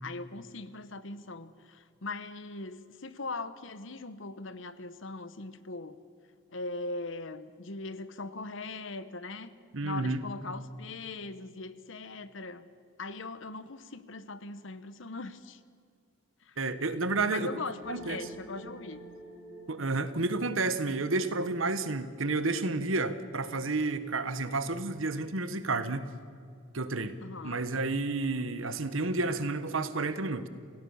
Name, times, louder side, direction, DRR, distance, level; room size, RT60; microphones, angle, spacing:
voice 1, 0.0-6.0 6.5-9.5 9.8-12.7 13.0-15.6 16.4-16.6 17.3-19.0 27.2-27.6, left 3 dB, 65° left, 13 dB, 1.1 m, -40 dB
voice 2, 9.7-10.2 16.6-17.5 17.9-18.2 19.7-26.1 26.7-27.2 27.4-30.5, right 3 dB, 75° right, 12 dB, 1.3 m, -30 dB
sound 1, 17.8-22.3, right 1 dB, 50° left, 7.2 m, -49 dB
28.5 x 17.0 x 7.1 m, 2.2 s
head